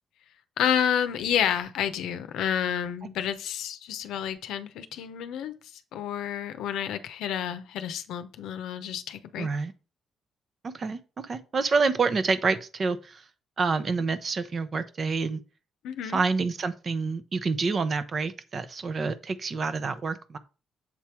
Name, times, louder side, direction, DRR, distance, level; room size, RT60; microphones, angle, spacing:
voice 1, 0.6-9.5 15.8-16.2, left 9 dB, 85° left, 0.6 m, -30 dB
voice 2, 9.4-9.7 10.6-13.2 13.6-15.4 16.1-20.4, right 4 dB, 45° right, 0.7 m, -28 dB
7.3 x 3.5 x 4.3 m
cardioid pair, 90°, 0 cm